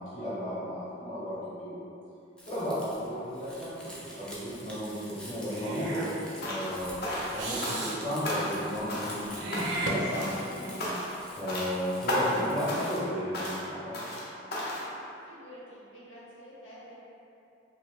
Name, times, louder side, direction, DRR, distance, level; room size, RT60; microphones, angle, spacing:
voice 1, 0.0-1.8 2.4-6.1 6.4-10.9 11.4-14.0, equal, 35° left, -12 dB, 0.9 m, -34 dB
Crumpling crinkling, 2.4-13.0, equal, 5° left, 0.4 m, -48 dB
Meow / Hiss, 5.5-6.1 7.4-8.0 9.3-10.6, right 1 dB, 60° right, 0.4 m, -34 dB
sound 1, 6.4-6.7 7.0-8.0 8.2-8.6 8.9-9.2 9.5-9.9 10.1-10.5 10.8-11.2 11.5-11.7 12.1-12.4 12.7-13.0 13.3-13.6 13.9-14.2 14.5-14.9, left 1 dB, 55° left, 0.6 m, -33 dB
voice 2, 15.2-16.9, equal, 80° left, -8 dB, 1.0 m, -49 dB
2.9 x 2.6 x 3.3 m, 2.7 s
head